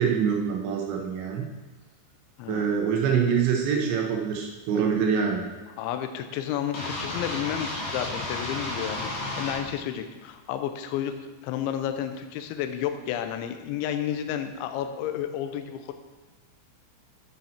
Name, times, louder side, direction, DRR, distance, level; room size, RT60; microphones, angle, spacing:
voice 1, 0.0-1.5 2.5-5.5, right 6 dB, 75° right, 1 dB, 3.2 m, -25 dB
voice 2, 2.4-2.7 5.8-15.9, left 10 dB, 80° left, 8 dB, 3.0 m, -31 dB
sound 1, 6.7-9.6, left 2 dB, 50° left, 2.6 m, -32 dB
10.5 x 8.3 x 4.4 m, 1.2 s
omnidirectional pair, 5.5 m